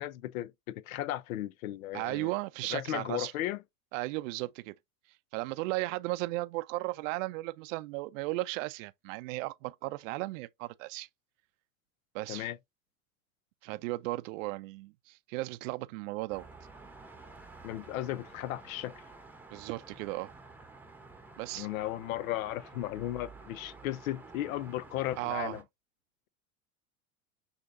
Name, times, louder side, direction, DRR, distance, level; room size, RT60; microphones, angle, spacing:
voice 1, 0.0-2.3 2.7-3.6 12.3-12.6 17.6-19.0 21.5-25.6, left 14 dB, 75° left, 0.5 m, -35 dB
voice 2, 1.9-3.3 3.9-4.7 5.3-11.1 12.1-12.5 13.6-16.5 19.5-20.3 21.4-21.7 25.2-25.6, right 20 dB, 65° right, 0.5 m, -35 dB
sound 1, 16.3-25.6, right 3 dB, 5° right, 0.9 m, -51 dB
6.2 x 2.9 x 2.6 m
hypercardioid pair, 85°, 43 cm